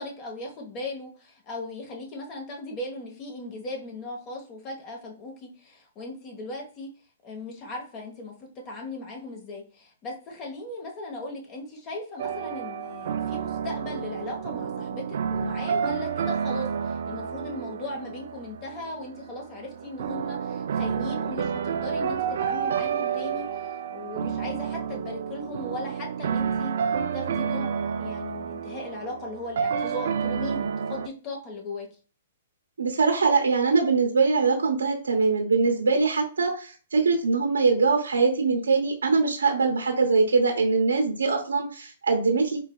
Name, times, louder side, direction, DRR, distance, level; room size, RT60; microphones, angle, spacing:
voice 1, 0.0-6.9 7.2-26.7 27.1-31.9, left 2 dB, 30° left, 1 dB, 1.2 m, -38 dB
sound 1, 12.2-31.1, right 7 dB, 65° right, 0.4 m, -30 dB
voice 2, 32.8-42.6, right 4 dB, 85° right, 2 dB, 0.9 m, -22 dB
4.7 x 3.2 x 2.3 m, 0.38 s
hypercardioid pair, 135°, 0 cm